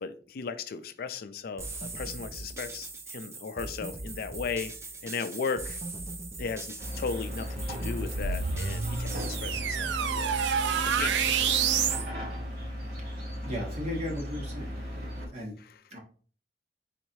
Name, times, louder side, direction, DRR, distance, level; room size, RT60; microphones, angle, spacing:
voice 1, 0.0-4.7 5.0-5.8 6.4-10.3 10.9-11.8 15.6-15.8, left 5 dB, 55° left, 0.4 m, -36 dB
sound 1, 1.6-9.6, right 2 dB, 15° right, 0.4 m, -40 dB
sound 2, 6.8-15.3, equal, 55° right, 1.7 m, -36 dB
sound 3, 8.1-12.1, right 7 dB, 80° right, 0.4 m, -28 dB
voice 2, 13.4-14.8 15.3-15.5 15.9-16.0, left 1 dB, 40° right, 1.0 m, -35 dB
4.0 x 3.1 x 2.7 m
head